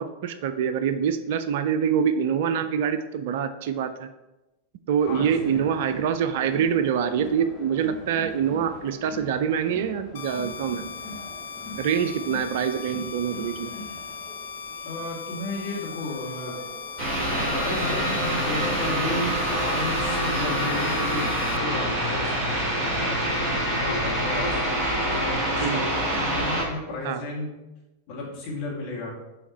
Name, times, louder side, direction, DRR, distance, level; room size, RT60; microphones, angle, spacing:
voice 1, 0.0-4.1 4.9-10.9 11.8-13.7 25.6-25.8 27.0-27.2, right 7 dB, 50° right, 11 dB, 0.4 m, -25 dB
Crowd, 5.0-18.6, left 1 dB, 25° left, 1.6 m, -44 dB
voice 2, 5.1-5.6 14.8-16.6 17.5-22.3 22.8-24.6 25.0-27.5 28.1-29.1, left 2 dB, 45° left, -4 dB, 2.1 m, -33 dB
sound 1, 10.1-21.6, left 5 dB, 60° left, 0.4 m, -38 dB
sound 2, 17.0-26.6, right 1 dB, 25° right, 2.2 m, -26 dB
7.0 x 3.4 x 4.3 m, 1.0 s
figure-of-eight pair, 90°, 0 cm